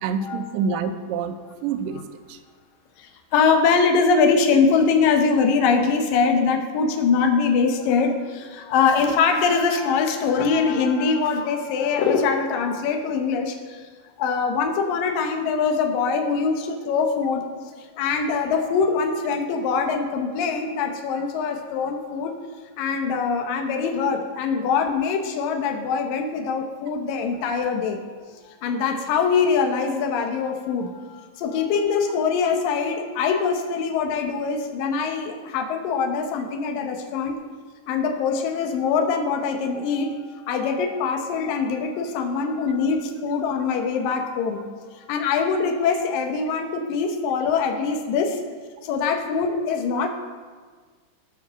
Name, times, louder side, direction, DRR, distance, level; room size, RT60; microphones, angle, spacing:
voice 1, 0.0-1.4 1.6-2.4 49.9-50.0, right 6 dB, 80° right, 7 dB, 2.3 m, -27 dB
voice 2, 3.0-13.9 14.2-22.4 22.8-28.0 28.3-37.4 37.9-40.2 40.5-44.7 44.9-48.4 48.8-50.1, left 5 dB, 80° left, 4 dB, 2.7 m, -23 dB
15.5 x 5.8 x 6.3 m, 1.5 s
omnidirectional pair, 4.0 m